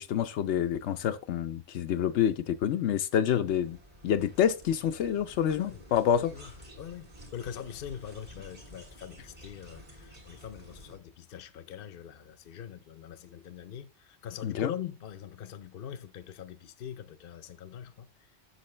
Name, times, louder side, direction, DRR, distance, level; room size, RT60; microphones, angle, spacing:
voice 1, 0.0-3.8 4.0-6.3 14.4-14.7, left 9 dB, 90° left, 0.9 m, -27 dB
sound 1, 3.5-11.0, equal, 45° right, 2.7 m, -51 dB
voice 2, 5.5-5.8 6.2-6.5 6.8-18.1, left 9 dB, 60° left, 0.8 m, -43 dB
8.3 x 6.5 x 3.2 m
omnidirectional pair, 1.1 m